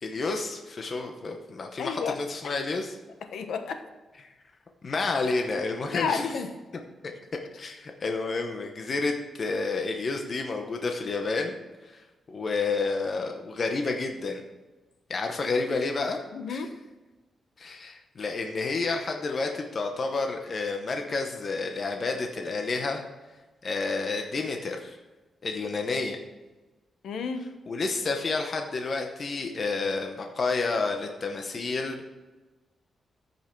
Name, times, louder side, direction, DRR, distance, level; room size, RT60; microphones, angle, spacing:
voice 1, 0.0-3.0 4.2-4.3 4.8-6.3 7.0-7.1 7.6-14.4 15.1-16.2 16.5-16.6 17.6-23.0 23.6-25.0 25.4-26.2 27.7-32.1, left 3 dB, 40° left, 3 dB, 0.9 m, -30 dB
voice 2, 1.8-2.2 2.4-2.6 3.3-3.8 5.9-6.5 16.3-16.7 27.0-27.5, left 5 dB, 85° left, 8 dB, 1.0 m, -31 dB
14.0 x 5.5 x 4.6 m, 1.2 s
wide cardioid pair, 155°, 0 cm